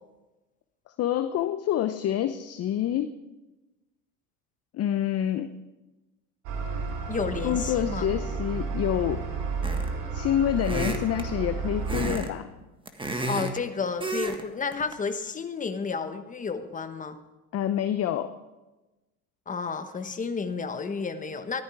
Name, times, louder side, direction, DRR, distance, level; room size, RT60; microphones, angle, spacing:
voice 1, 1.0-3.1 4.7-5.5 7.4-9.2 10.1-12.5 17.5-18.4, left 11 dB, 35° left, 10 dB, 0.7 m, -27 dB
sound 1, 6.5-12.2, right 4 dB, 65° right, 2.5 m, -32 dB
voice 2, 7.1-8.1 13.3-17.2 19.5-21.6, left 5 dB, 15° left, 9 dB, 1.1 m, -31 dB
sound 2, 9.6-10.0 10.6-11.3 11.9-12.3 12.6-13.6 14.0-14.4 14.7-14.9, right 2 dB, 10° right, 1.5 m, -31 dB
14.5 x 12.5 x 4.8 m, 1.1 s
hypercardioid pair, 100°, 46 cm